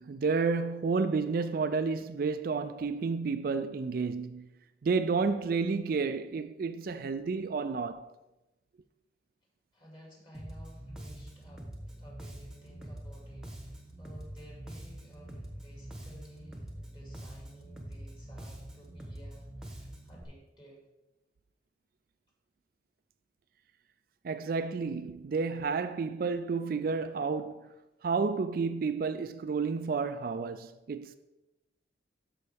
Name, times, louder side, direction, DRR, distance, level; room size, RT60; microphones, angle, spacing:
voice 1, 0.0-4.5 4.8-8.1 24.2-27.7 28.0-31.2, right 4 dB, 50° right, 0.3 m, -31 dB
voice 2, 9.7-20.8, equal, 25° left, 2.3 m, -54 dB
Bass guitar, 10.3-20.2, right 1 dB, 5° right, 1.0 m, -45 dB
13.0 x 5.5 x 3.4 m
head